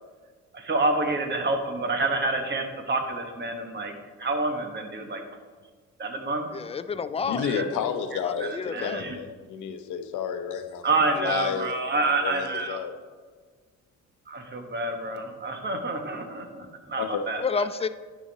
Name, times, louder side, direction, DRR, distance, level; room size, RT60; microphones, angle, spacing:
voice 1, 0.5-3.9 4.2-5.2 6.0-6.5 7.4-7.6 8.4-9.1 10.8-12.8 14.3-17.6, right 2 dB, 35° right, 5 dB, 1.3 m, -28 dB
voice 2, 6.5-7.9 8.2-9.1 17.4-17.9, left 5 dB, 20° left, 13 dB, 0.3 m, -30 dB
voice 3, 7.2-10.9 11.1-12.9 17.0-17.2, left 7 dB, 80° left, 8 dB, 0.8 m, -31 dB
10.0 x 5.0 x 4.0 m, 1.5 s
cardioid pair, 90°, 30 cm